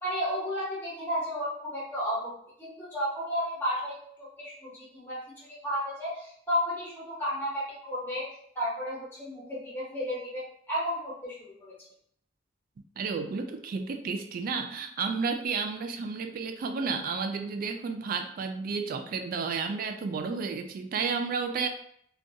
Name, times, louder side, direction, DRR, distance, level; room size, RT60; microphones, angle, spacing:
voice 1, 0.0-2.3 2.6-8.3 8.5-11.7, equal, 10° left, -7 dB, 0.7 m, -33 dB
voice 2, 13.0-21.7, right 5 dB, 50° right, 6 dB, 0.3 m, -32 dB
2.4 x 2.2 x 2.6 m, 0.65 s
head